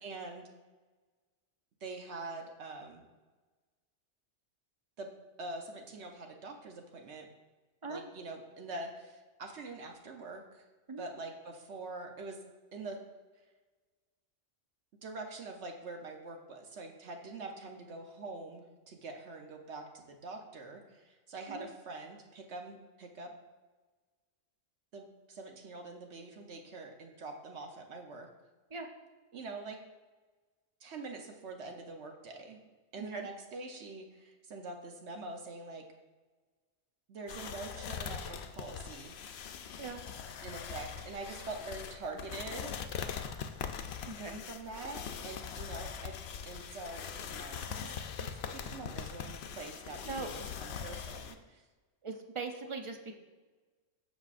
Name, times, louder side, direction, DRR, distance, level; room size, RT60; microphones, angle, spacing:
voice 1, 0.0-0.5 1.8-3.0 5.0-5.1 5.4-7.3 7.9-10.6 11.0-12.4 12.7-13.0 15.0-23.3 24.9-28.3 29.3-29.8 30.8-32.6 32.9-35.9 37.1-39.2 40.4-42.7 44.5-46.2 46.4-47.9 48.2-51.6, right 3 dB, 65° right, 3 dB, 1.1 m, -44 dB
voice 2, 33.0-33.3 39.8-40.0 44.0-44.4 50.1-50.3 52.0-53.1, right 4 dB, 40° right, 4 dB, 0.5 m, -40 dB
sound 1, 37.3-51.4, left 7 dB, 65° left, 0.8 m, -42 dB
13.5 x 5.3 x 2.5 m, 1.3 s
omnidirectional pair, 1.3 m